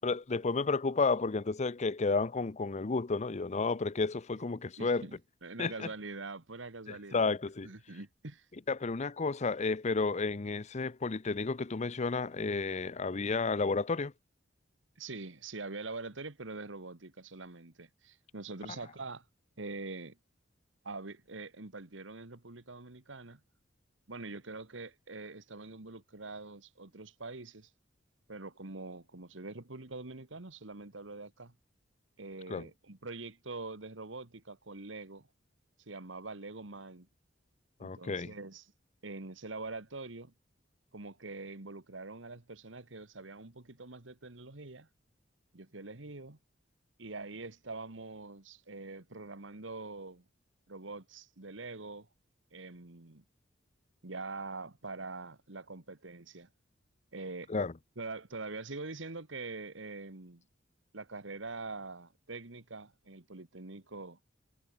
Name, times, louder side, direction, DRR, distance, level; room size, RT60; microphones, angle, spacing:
voice 1, 0.0-5.0 5.6-5.9 6.9-7.7 8.7-14.1 32.5-32.7 37.8-38.3 57.5-57.7, left 4 dB, 35° left, 0.6 m, -32 dB
voice 2, 4.8-7.3 7.6-8.5 15.0-19.2 19.6-20.2 20.8-23.4 24.1-27.7 28.3-31.5 32.2-35.3 35.9-37.1 37.8-38.7 39.0-40.3 40.9-44.9 45.5-46.4 47.0-50.2 50.7-52.1 52.5-53.2 54.0-56.5 57.1-57.5 58.0-60.4 60.9-64.2, right 3 dB, 75° right, 1.9 m, -44 dB
head